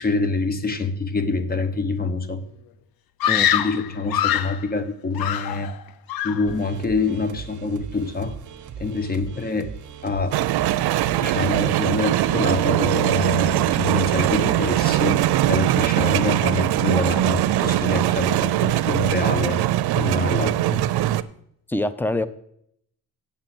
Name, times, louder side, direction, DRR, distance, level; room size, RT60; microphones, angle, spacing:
voice 1, 0.0-2.4 3.3-5.7 6.2-8.4 8.8-9.7 10.0-10.4 11.2-15.2 15.5-19.6 19.9-20.8, left 3 dB, 25° left, 11 dB, 1.0 m, -26 dB
Screaming, 3.2-4.6 5.1-5.8 6.1-6.5, left 10 dB, 70° left, 0.7 m, -23 dB
sound 1, 6.5-11.6, right 7 dB, 50° right, 1.0 m, -39 dB
sound 2, 10.3-21.2, right 14 dB, 80° right, 0.6 m, -21 dB
voice 2, 21.7-22.3, left 2 dB, 5° left, 14 dB, 0.5 m, -24 dB
8.4 x 7.0 x 7.7 m, 0.70 s
cardioid pair, 135°, 38 cm